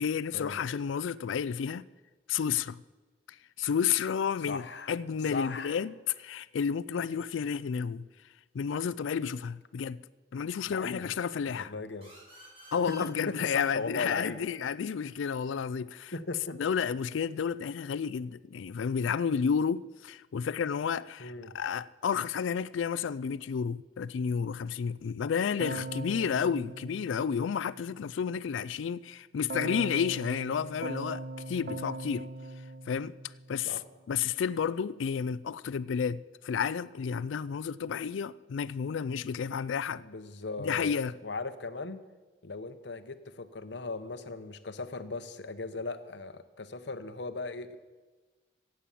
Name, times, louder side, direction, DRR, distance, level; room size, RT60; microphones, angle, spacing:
voice 1, 0.0-1.8 2.3-2.8 3.3-8.1 8.5-10.0 10.3-11.7 12.7-16.1 16.6-32.3 32.9-33.1 33.5-33.8 34.1-40.0 40.6-41.1, left 7 dB, 80° left, 0.4 m, -31 dB
voice 2, 4.5-4.9 5.3-5.8 10.6-11.1 11.5-12.1 12.9-14.4 16.1-16.6 21.2-21.5 33.7-33.8 40.0-40.9 41.2-42.0 42.4-47.8, left 3 dB, 65° left, 0.9 m, -38 dB
sound 1, 12.0-15.4, right 2 dB, 30° right, 6.2 m, -54 dB
Keyboard (musical), 25.6-27.9 29.5-33.8, right 2 dB, 50° right, 0.7 m, -40 dB
15.5 x 8.6 x 7.5 m
head